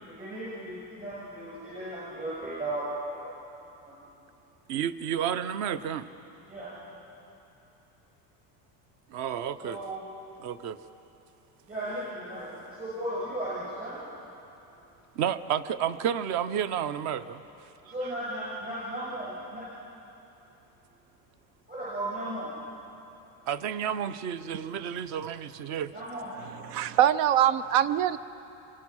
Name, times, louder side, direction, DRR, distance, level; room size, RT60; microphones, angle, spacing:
voice 1, 0.2-3.0 3.2-3.3 6.5-6.7 9.6-10.0 11.7-14.0 17.8-19.6 21.7-22.5 25.9-26.4, right 1 dB, 20° right, -9 dB, 7.3 m, -35 dB
voice 2, 4.7-6.1 9.1-9.8 10.4-10.8 15.2-17.4 23.5-25.9, right 9 dB, 40° right, 14 dB, 0.7 m, -31 dB
voice 3, 26.7-28.2, right 11 dB, 80° right, 16 dB, 0.8 m, -23 dB
27.5 x 23.0 x 6.2 m, 3.0 s
cardioid pair, 170°, 45 cm